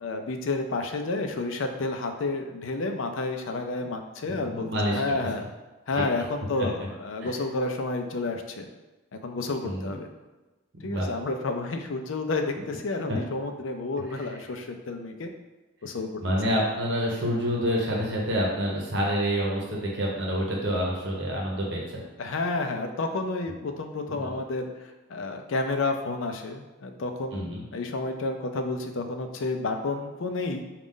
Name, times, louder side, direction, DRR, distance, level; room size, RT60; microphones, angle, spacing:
voice 1, 0.0-5.4 5.9-8.7 9.2-10.1 10.8-15.3 15.8-16.1 22.2-30.6, left 3 dB, 75° left, 5 dB, 0.5 m, -30 dB
voice 2, 4.3-5.0 6.0-6.1 7.2-7.3 9.6-10.0 10.8-11.1 13.1-13.2 16.2-22.0 24.1-24.3 27.3-27.6, equal, 60° right, -2 dB, 0.9 m, -28 dB
5.1 x 2.4 x 3.7 m, 1.2 s
head